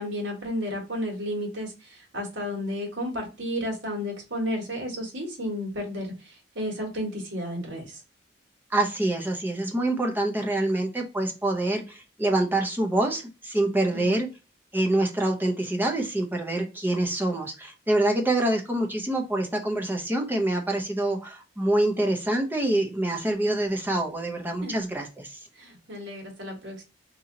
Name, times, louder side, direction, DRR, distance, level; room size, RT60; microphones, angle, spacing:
voice 1, 0.0-8.0 13.9-14.2 24.6-24.9 25.5-26.8, equal, 70° right, 1.5 m, -32 dB
voice 2, 8.7-14.3 14.7-25.4, right 1 dB, 10° right, 0.7 m, -26 dB
2.8 x 2.7 x 3.8 m
head